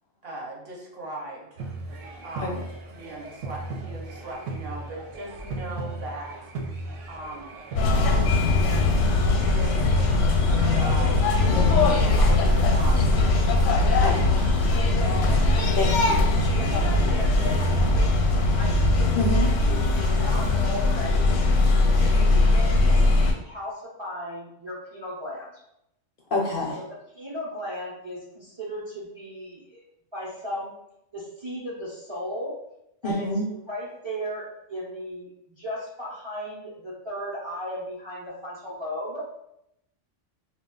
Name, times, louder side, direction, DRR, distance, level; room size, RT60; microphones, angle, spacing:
voice 1, 0.2-1.7 2.2-6.5 7.1-7.5 8.0-11.2 11.5-13.7 16.0-16.2, right 1 dB, 60° right, -1 dB, 0.8 m, -39 dB
sound 1, 1.6-18.2, right 2 dB, 90° right, 0.9 m, -37 dB
sound 2, 7.8-23.3, left 2 dB, 80° left, 0.9 m, -20 dB
voice 2, 11.5-12.0 14.0-14.4 15.7-16.2 19.1-19.5 26.3-26.8 33.0-33.5, left 2 dB, 60° left, -1 dB, 0.6 m, -27 dB
voice 3, 14.8-16.0 16.5-18.1 18.5-21.4 21.9-25.6 26.7-29.8 30.1-30.7 31.1-32.6 33.0-35.3 35.6-39.3, equal, 35° right, -6 dB, 0.5 m, -36 dB
2.3 x 2.3 x 3.6 m, 0.80 s
omnidirectional pair, 1.2 m